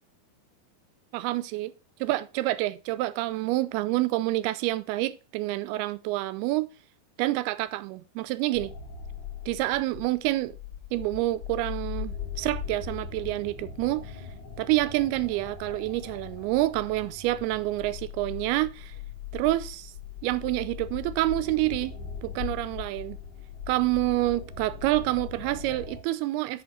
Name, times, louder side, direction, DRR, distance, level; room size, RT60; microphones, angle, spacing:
voice 1, 1.1-1.7 2.0-6.7 7.2-8.7 9.5-10.6 10.9-14.2 14.6-19.0 19.3-19.9 20.2-23.2 23.7-26.6, right 17 dB, 85° right, 2.4 m, -28 dB
sound 1, 8.5-26.0, left 7 dB, 65° left, 1.3 m, -40 dB
10.5 x 5.2 x 4.0 m
omnidirectional pair, 4.7 m